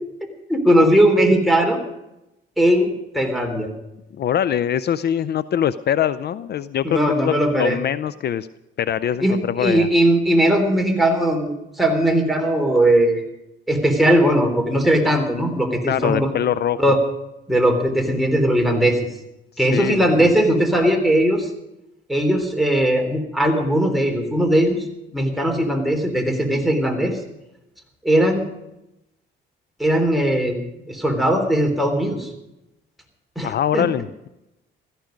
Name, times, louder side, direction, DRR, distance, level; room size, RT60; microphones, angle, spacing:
voice 1, 0.5-1.8 2.6-3.7 6.8-7.8 9.2-13.3 13.7-16.3 16.8-17.0 17.5-19.0 19.6-21.5 22.1-24.9 25.1-27.2 28.0-28.5 29.8-30.6 30.9-32.3 33.4-33.8, right 1 dB, ahead, 2 dB, 3.4 m, -19 dB
voice 2, 4.1-8.5 8.8-9.9 15.9-16.8 19.7-20.1 33.4-34.3, left 9 dB, 55° left, 15 dB, 0.5 m, -23 dB
16.5 x 14.0 x 5.2 m, 0.90 s
cardioid pair, 90°, 20 cm